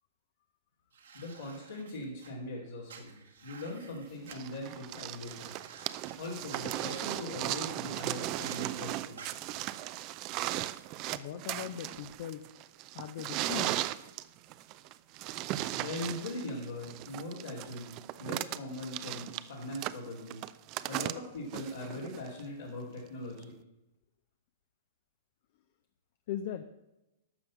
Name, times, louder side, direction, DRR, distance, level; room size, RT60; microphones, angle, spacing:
sound 1, 0.9-2.3 2.9-4.4 4.9-5.0 5.3-6.1 6.5-7.2 8.3-8.7 9.2-9.3, right 6 dB, 70° right, 1.6 m, -51 dB
voice 1, 1.1-5.5 6.2-9.2 15.7-20.4 20.8-23.5, left 1 dB, 70° left, -6 dB, 2.6 m, -41 dB
sound 2, 4.3-22.4 23.4-23.5, right 15 dB, 35° right, 0.4 m, -37 dB
voice 2, 11.1-12.5 12.9-13.7 26.3-26.6, left 10 dB, 50° left, 9 dB, 0.6 m, -39 dB
12.0 x 6.9 x 5.7 m, 0.96 s
figure-of-eight pair, 105°, 0 cm